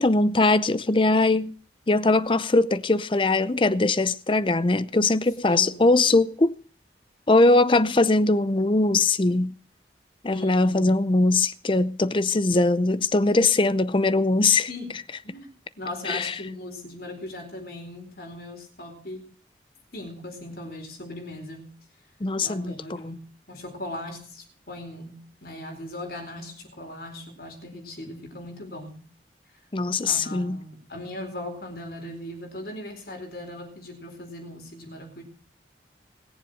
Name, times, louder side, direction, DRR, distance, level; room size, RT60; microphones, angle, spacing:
voice 1, 0.0-1.5 1.9-6.6 7.3-9.5 10.2-14.7 16.0-16.4 22.2-22.7 23.0-23.2 29.7-30.6, left 2 dB, 30° left, 0.6 m, -21 dB
voice 2, 5.5-5.9 10.3-11.0 14.7-14.9 15.2-19.2 19.9-21.7 22.4-23.2 23.5-29.0 30.0-35.2, left 1 dB, 55° left, 4.4 m, -38 dB
20.0 x 7.3 x 6.4 m
head